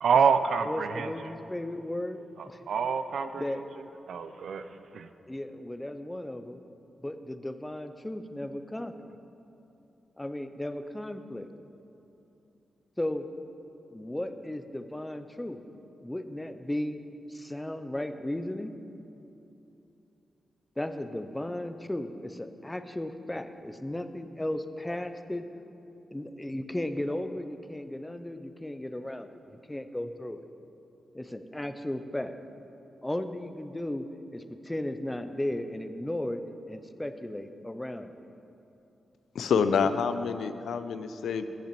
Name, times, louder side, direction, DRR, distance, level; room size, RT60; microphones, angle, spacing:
voice 1, 0.0-1.1 2.7-3.4 4.1-4.6 4.9-5.1, right 6 dB, 75° right, 10 dB, 0.4 m, -26 dB
voice 2, 0.6-2.7 3.4-3.6 5.3-6.6 7.0-9.1 10.2-11.5 13.0-13.3 13.9-15.6 16.0-17.0 17.3-18.7 20.8-25.4 26.1-30.5 31.1-32.4 33.0-34.1 34.3-36.4 36.7-38.1, left 1 dB, 10° left, 9 dB, 0.4 m, -35 dB
voice 3, 39.3-41.5, left 6 dB, 90° left, 10 dB, 0.3 m, -27 dB
15.0 x 5.7 x 3.0 m, 2.9 s
cardioid pair, 100°, 0 cm